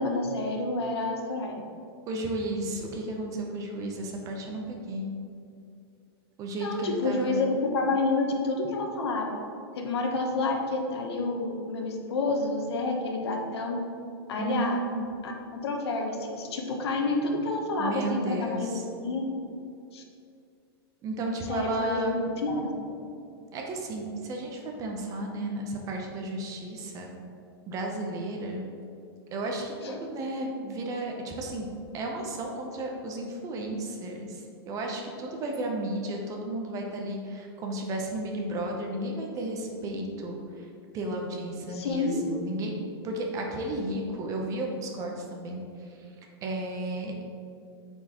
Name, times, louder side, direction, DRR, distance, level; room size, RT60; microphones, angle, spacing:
voice 1, 0.0-1.6 6.6-9.4 9.7-13.8 14.3-14.8 15.2-19.2 19.9-20.0 21.5-22.7 29.8-30.0 41.7-42.2, left 3 dB, 80° left, 2 dB, 1.0 m, -29 dB
voice 2, 2.1-5.1 6.4-7.4 14.4-15.0 17.8-18.8 21.0-22.1 23.5-27.1 27.7-28.6 29.3-31.7 31.9-40.7 40.9-45.6 46.0-46.1 46.4-47.2, right 1 dB, 25° right, 1 dB, 0.7 m, -33 dB
7.2 x 4.4 x 3.0 m, 2.6 s
supercardioid pair, 150°, 13 cm